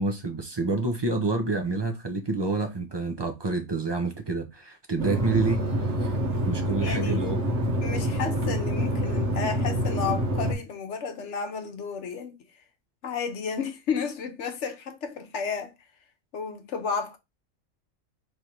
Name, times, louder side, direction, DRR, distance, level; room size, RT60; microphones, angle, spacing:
voice 1, 0.0-5.6 6.0-6.1 6.5-7.4, right 3 dB, 35° right, 0.4 m, -28 dB
sound 1, 5.0-10.5, right 1 dB, 55° right, 1.4 m, -27 dB
voice 2, 6.8-7.2 7.8-12.4 13.0-15.7 16.3-17.2, left 6 dB, 65° left, 1.0 m, -32 dB
3.3 x 2.6 x 4.3 m
omnidirectional pair, 1.3 m